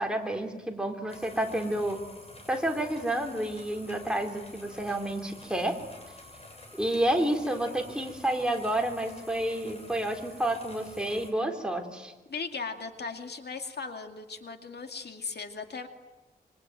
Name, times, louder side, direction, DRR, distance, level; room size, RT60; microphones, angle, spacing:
voice 1, 0.0-2.0 2.5-5.8 6.8-12.1, right 1 dB, 5° right, 3 dB, 3.7 m, -30 dB
sound 1, 1.1-11.3, left 2 dB, 35° left, 6.7 m, -49 dB
voice 2, 12.3-15.9, left 4 dB, 70° left, 5 dB, 2.3 m, -37 dB
26.5 x 25.0 x 9.2 m, 1.1 s
wide cardioid pair, 100°, 17 cm